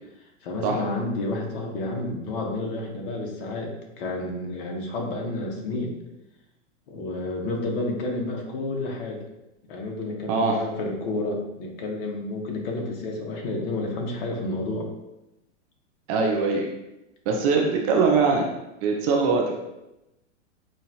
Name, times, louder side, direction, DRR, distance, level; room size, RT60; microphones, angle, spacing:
voice 1, 0.4-5.9 6.9-9.2 9.7-14.9, left 2 dB, 50° left, 0 dB, 1.2 m, -30 dB
voice 2, 16.1-16.7 17.3-18.4 18.8-19.4, right 4 dB, 30° right, 1 dB, 0.5 m, -21 dB
5.7 x 2.5 x 2.9 m, 0.92 s
hypercardioid pair, 140°, 37 cm